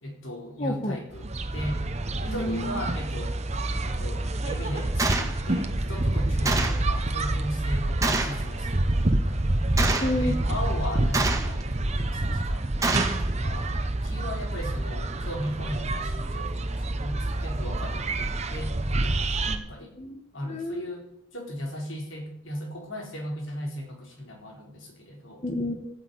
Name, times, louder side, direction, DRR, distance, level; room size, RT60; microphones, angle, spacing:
voice 1, 0.0-1.8 2.2-3.4 3.8-9.4 10.2-13.7 14.0-19.9 20.3-21.0 21.3-25.4, equal, 80° left, 2 dB, 4.2 m, -37 dB
voice 2, 0.6-1.0 2.2-2.8 10.0-10.4 19.5-20.9 25.4-25.9, left 1 dB, 35° left, 5 dB, 1.5 m, -31 dB
sound 1, 1.1-19.6, right 1 dB, 35° right, 1.1 m, -27 dB
Gunshot gunfire, 5.0-5.3 6.5-6.9 8.0-8.4 9.8-10.2 11.1-11.6 12.8-13.2, right 3 dB, 15° right, 1.8 m, -26 dB
14.0 x 9.7 x 8.5 m, 0.78 s
head